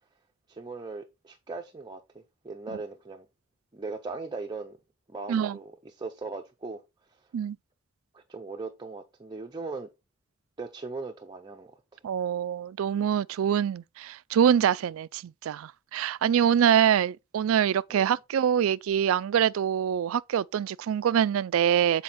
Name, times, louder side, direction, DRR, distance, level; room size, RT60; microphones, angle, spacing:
voice 1, 0.5-3.3 3.7-4.8 5.1-6.8 8.1-9.9 10.6-11.7 17.9-18.1, right 3 dB, 20° right, 0.6 m, -39 dB
voice 2, 12.0-22.0, right 9 dB, 70° right, 0.3 m, -25 dB
7.7 x 4.5 x 4.1 m
head